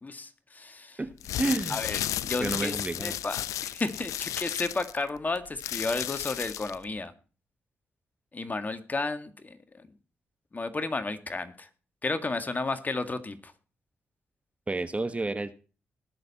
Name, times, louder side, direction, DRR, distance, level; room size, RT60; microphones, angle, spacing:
voice 1, 0.0-1.0 1.7-2.0 2.3-2.7 3.0-3.4 3.7-7.1 8.3-9.6 10.5-11.7 12.0-13.5, left 3 dB, 30° left, 9 dB, 1.9 m, -32 dB
voice 2, 1.0-1.8 2.2-3.2 14.7-15.6, right 2 dB, 25° right, 12 dB, 1.1 m, -31 dB
sound 1, 1.1-6.8, left 12 dB, 80° left, 0.5 m, -34 dB
20.0 x 6.9 x 4.2 m, 0.35 s
supercardioid pair, 55°, 5 cm